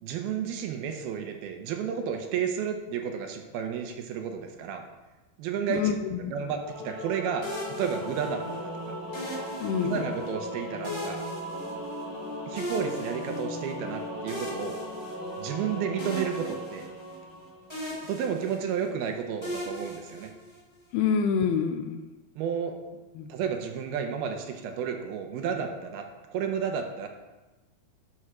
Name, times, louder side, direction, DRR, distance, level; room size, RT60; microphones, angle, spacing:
voice 1, 0.0-4.8 5.4-6.0 6.3-8.9 9.8-11.2 12.5-14.8 15.4-16.8 18.1-20.3 22.4-22.8 23.3-27.1, right 7 dB, 85° right, 5 dB, 2.9 m, -32 dB
voice 2, 5.7-6.3 9.6-10.2 20.9-22.1 23.2-23.3, left 6 dB, 85° left, 8 dB, 2.7 m, -27 dB
Singing / Musical instrument, 6.6-17.9, equal, 70° left, 4.1 m, -37 dB
sound 1, 7.4-8.6 9.1-10.3 10.8-12.2 12.6-13.7 14.3-15.6 16.0-17.4 17.7-18.9 19.4-20.8, equal, 5° left, 2.7 m, -39 dB
11.5 x 5.7 x 6.3 m, 1.1 s
omnidirectional pair, 4.4 m